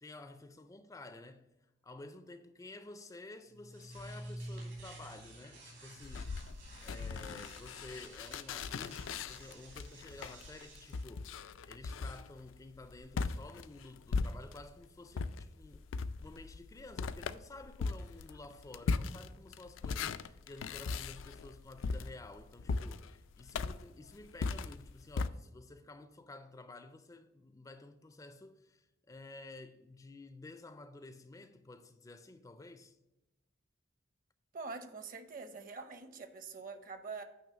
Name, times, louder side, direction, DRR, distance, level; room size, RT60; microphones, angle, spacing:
voice 1, 0.0-1.5 1.8-6.4 6.8-15.9 16.2-33.0, left 2 dB, 15° left, 0.3 m, -52 dB
sound 1, 3.5-11.0, right 1 dB, 75° right, 2.7 m, -50 dB
sound 2, 6.0-14.8 15.1-25.3, left 4 dB, 85° left, 0.4 m, -39 dB
voice 2, 34.5-37.2, right 4 dB, 45° right, 0.8 m, -45 dB
8.7 x 3.3 x 6.6 m
head